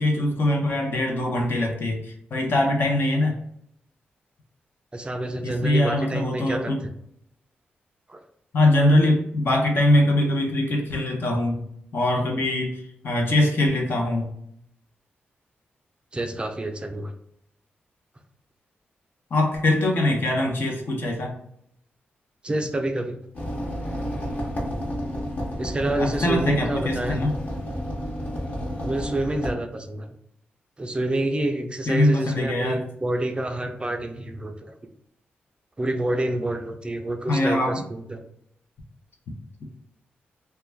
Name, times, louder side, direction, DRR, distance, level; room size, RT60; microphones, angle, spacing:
voice 1, 0.0-3.4 5.4-6.8 8.5-11.6 11.9-14.3 19.3-21.4 26.0-27.3 31.9-32.8 37.3-37.8, left 1 dB, 65° left, 1 dB, 0.7 m, -22 dB
voice 2, 4.9-6.7 8.1-8.2 16.1-17.1 22.4-23.2 25.6-27.2 28.8-30.1 30.8-34.8 35.8-38.2, right 1 dB, 25° right, 5 dB, 0.4 m, -28 dB
sound 1, 23.3-29.5, equal, 45° left, 1.0 m, -30 dB
2.3 x 2.2 x 3.2 m, 0.72 s
cardioid pair, 75°, 4 cm